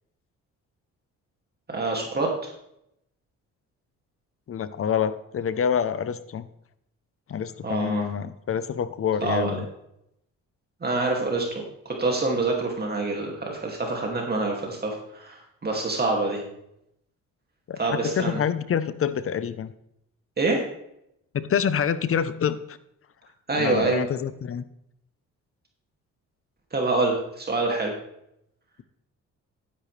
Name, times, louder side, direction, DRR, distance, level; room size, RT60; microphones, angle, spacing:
voice 1, 1.7-2.5 7.6-8.1 9.2-9.6 10.8-16.4 17.8-18.4 20.4-20.6 23.5-24.1 26.7-27.9, right 3 dB, 30° right, 0 dB, 2.5 m, -26 dB
voice 2, 4.5-6.5 7.3-9.7 17.7-19.7 21.3-22.8 23.6-24.6, left 8 dB, 45° left, 13 dB, 0.8 m, -27 dB
12.0 x 10.0 x 3.4 m, 0.77 s
cardioid pair, 90°, 30 cm